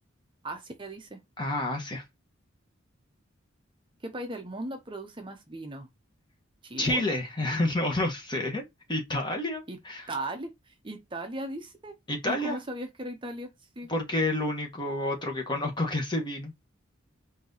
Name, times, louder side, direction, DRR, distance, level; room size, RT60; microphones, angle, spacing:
voice 1, 0.4-1.2 4.0-5.9 6.6-7.0 9.7-9.8 10.1-11.9 12.2-13.5 13.8-13.9, right 1 dB, 25° right, 0.7 m, -37 dB
voice 2, 1.4-2.0 6.8-10.1 12.1-12.6 13.9-16.5, left 1 dB, 25° left, 1.4 m, -29 dB
4.5 x 2.8 x 3.9 m
head